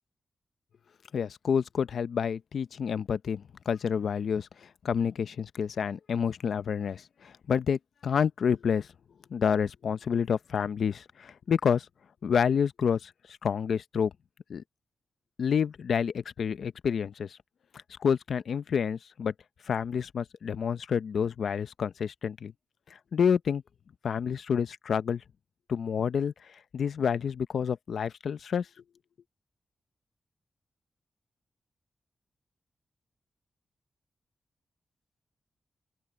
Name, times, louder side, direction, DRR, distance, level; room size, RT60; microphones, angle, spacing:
voice 1, 1.1-8.9 9.3-11.9 12.2-14.1 14.5-14.6 15.4-17.4 17.9-19.3 19.6-22.5 22.9-23.6 24.0-25.2 25.7-28.7, left 7 dB, 75° left, 0.7 m, -29 dB
open air
wide cardioid pair, 115°, 0 cm